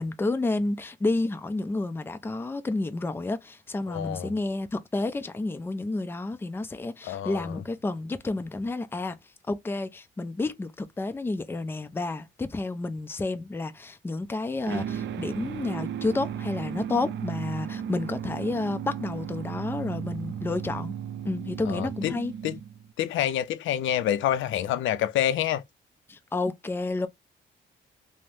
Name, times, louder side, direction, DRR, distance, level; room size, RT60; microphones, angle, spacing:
voice 1, 0.0-9.2 9.5-20.9 21.2-22.3 26.1-27.1, left 2 dB, 10° left, 0.4 m, -30 dB
voice 2, 3.9-4.3 7.0-7.6 21.7-22.1 22.4-22.6 23.0-25.6, left 11 dB, 75° left, 0.4 m, -27 dB
sound 1, 14.7-22.9, right 9 dB, 65° right, 0.4 m, -35 dB
3.2 x 2.0 x 2.6 m
cardioid pair, 90°, 20 cm